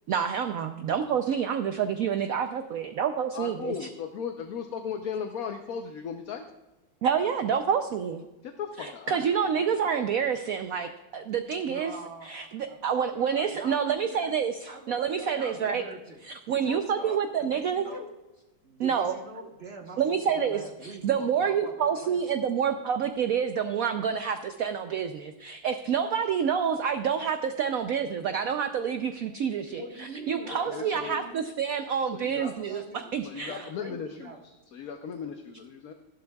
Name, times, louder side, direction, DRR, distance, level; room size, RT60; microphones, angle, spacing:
voice 1, 0.1-3.9 7.0-8.2 8.8-11.9 12.2-14.5 14.9-15.8 16.3-17.9 18.8-19.1 20.0-32.8 33.1-33.7, right 7 dB, 70° right, 7 dB, 0.8 m, -28 dB
voice 2, 3.3-6.4 8.4-9.4 9.9-10.2 30.4-31.2 32.1-32.8 33.2-35.9, left 7 dB, 60° left, 5 dB, 1.0 m, -37 dB
voice 3, 11.6-14.3 14.7-18.1 18.6-22.2 29.8-31.4 32.4-33.1 33.5-34.4, right 2 dB, 40° right, 3 dB, 1.2 m, -43 dB
15.0 x 12.0 x 2.3 m, 1.1 s
omnidirectional pair, 2.0 m